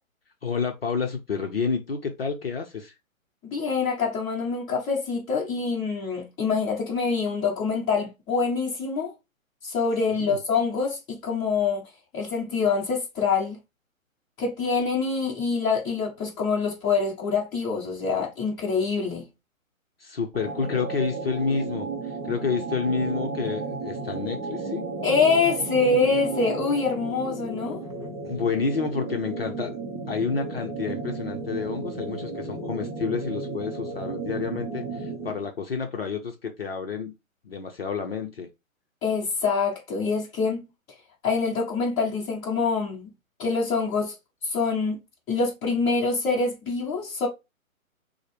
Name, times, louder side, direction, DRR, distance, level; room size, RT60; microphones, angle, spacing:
voice 1, 0.4-2.9 10.2-10.4 20.0-24.9 28.2-29.7 30.1-37.1 37.4-38.5, left 5 dB, 45° left, 0.6 m, -29 dB
voice 2, 3.4-9.1 9.6-11.9 12.1-13.6 14.4-19.3 25.0-27.8 39.0-40.6 41.2-43.0 43.4-44.1 44.4-45.0 45.3-47.3, left 4 dB, 10° left, 0.9 m, -25 dB
sound 1, 20.3-35.5, right 3 dB, 20° right, 0.6 m, -33 dB
6.3 x 2.1 x 3.2 m
figure-of-eight pair, 140°, 42 cm